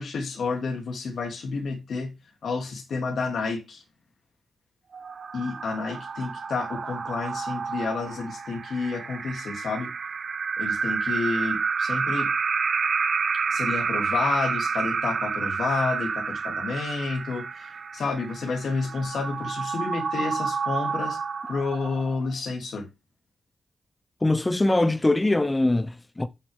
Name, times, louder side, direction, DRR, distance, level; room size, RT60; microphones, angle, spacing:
voice 1, 0.0-2.1 2.4-3.8 5.3-9.9 10.6-12.3 13.5-21.2 21.5-22.9, left 4 dB, 70° left, 3.0 m, -30 dB
sound 1, 4.9-22.3, right 5 dB, 60° right, 1.2 m, -29 dB
voice 2, 24.2-26.3, left 2 dB, 20° left, 0.9 m, -22 dB
12.5 x 7.0 x 3.7 m
cardioid pair, 60°, 0 cm